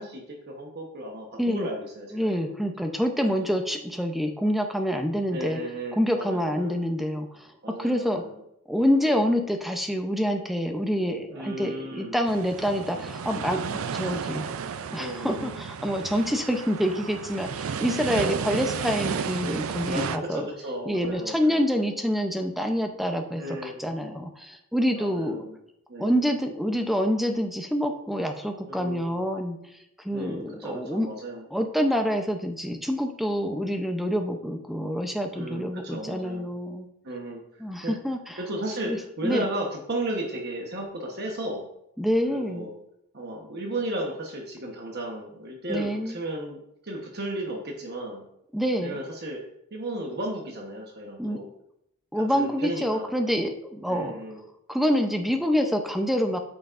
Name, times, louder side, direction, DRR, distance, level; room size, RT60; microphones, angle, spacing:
voice 1, 0.0-2.5 3.2-3.5 5.3-6.8 7.6-8.4 11.3-12.2 15.0-15.6 18.1-18.6 19.8-21.6 23.3-23.8 24.9-25.6 25.9-26.2 28.7-29.2 30.1-31.5 35.3-36.5 37.0-37.9 38.3-41.7 42.3-42.7 43.1-48.2 48.8-49.4 49.7-51.5 52.1-53.1 53.9-54.4, right 1 dB, 45° right, 0 dB, 1.1 m, -34 dB
voice 2, 2.1-5.6 5.9-7.5 7.8-8.2 8.7-13.6 13.9-14.4 14.9-20.5 20.9-25.4 26.0-29.6 30.0-31.1 31.5-36.9 37.6-38.4 38.8-39.0 39.2-39.5 42.0-42.7 45.7-46.1 48.5-49.0 51.2-51.4 52.1-54.2 54.7-56.4, equal, ahead, 4 dB, 0.6 m, -27 dB
sound 1, 12.3-20.2, right 6 dB, 65° right, 0.4 m, -33 dB
8.9 x 6.9 x 2.6 m, 0.78 s
head